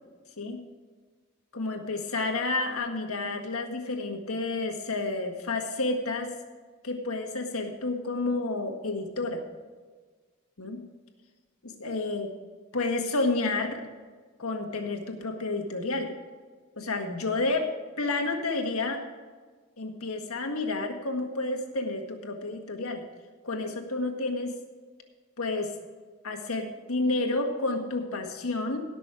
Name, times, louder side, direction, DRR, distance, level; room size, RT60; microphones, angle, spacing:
voice 1, 1.5-6.3 6.8-9.4 10.6-10.8 11.6-12.3 12.7-13.8 14.4-16.1 16.7-17.7 18.0-19.0 19.8-23.0 23.4-24.5 25.4-25.7 26.2-28.8, left 2 dB, 85° left, 3 dB, 1.7 m, -30 dB
17.5 x 6.3 x 4.9 m, 1.4 s
head